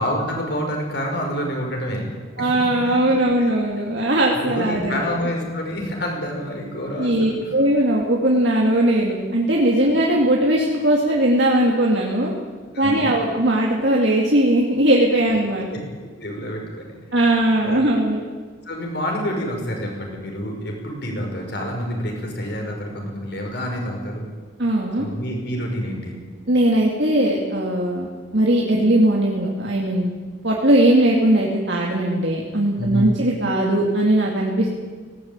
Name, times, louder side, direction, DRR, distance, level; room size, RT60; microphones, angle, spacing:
voice 1, 0.0-2.1 2.4-3.0 3.4-3.5 4.0-7.5 9.8-9.9 12.7-13.1 15.7-15.8 16.2-17.8 18.6-24.3 25.0-26.2 32.7-33.1, equal, 55° left, 1 dB, 6.3 m, -28 dB
voice 2, 2.4-5.0 7.0-12.3 12.8-15.7 17.1-18.2 24.6-25.1 26.5-28.1 28.3-30.1 30.4-34.7, right 1 dB, 60° right, -2 dB, 2.8 m, -19 dB
19.0 x 18.0 x 9.1 m, 1.5 s
head